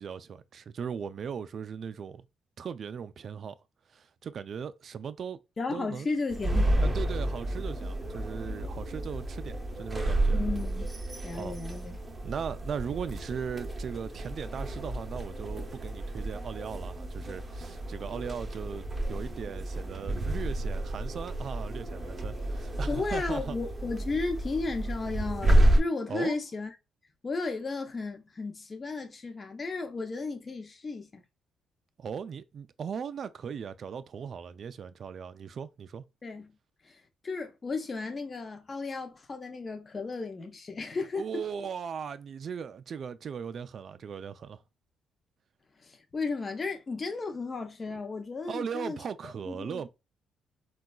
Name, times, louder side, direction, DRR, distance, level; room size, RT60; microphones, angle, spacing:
voice 1, 0.0-2.3 2.6-3.6 3.9-5.4 5.7-6.1 6.8-10.4 11.3-11.6 12.2-23.6 26.1-26.4 32.0-36.0 41.2-44.6 48.5-49.9, right 7 dB, 55° right, 0.3 m, -38 dB
voice 2, 5.6-6.8 10.3-10.9 11.2-12.0 22.9-26.7 27.2-31.2 36.2-36.5 36.8-41.4 45.8-49.0 49.2-49.9, left 3 dB, 35° left, 0.6 m, -34 dB
sound 1, 6.3-25.8, right 1 dB, 20° right, 0.7 m, -30 dB
3.8 x 2.2 x 2.2 m
cardioid pair, 90°, 0 cm